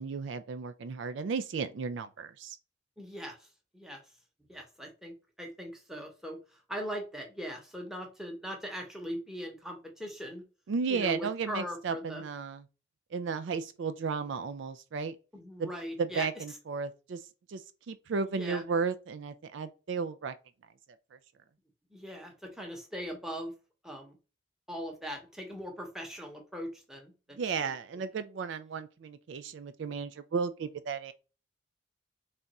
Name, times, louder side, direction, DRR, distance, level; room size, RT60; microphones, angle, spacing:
voice 1, 0.0-2.6 10.7-12.6 13.1-15.2 15.6-15.7 16.0-17.2 17.5-17.6 17.9-20.3 27.4-31.1, right 5 dB, 65° right, 0.3 m, -34 dB
voice 2, 3.0-3.5 3.7-4.0 4.5-10.4 10.9-12.2 15.3-16.3 18.3-18.6 21.9-23.5 23.8-24.2 24.7-27.7, equal, ahead, 0.8 m, -40 dB
3.4 x 2.5 x 4.1 m
head